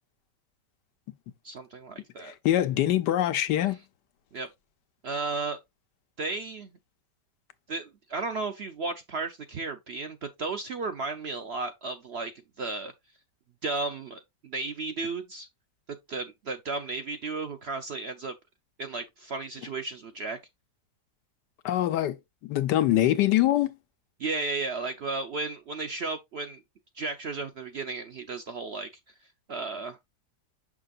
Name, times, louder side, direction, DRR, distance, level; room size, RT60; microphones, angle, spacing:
voice 1, 1.4-2.3 4.3-4.5 5.0-5.6 6.2-6.7 7.7-12.3 12.6-12.9 13.6-15.5 16.1-18.3 18.8-20.4 24.2-26.6 26.9-28.9 29.5-30.0, right 3 dB, 60° right, 0.7 m, -34 dB
voice 2, 2.2-3.8 21.6-22.2 22.4-23.7, left 13 dB, 90° left, 1.4 m, -24 dB
6.6 x 6.1 x 2.4 m
omnidirectional pair, 1.8 m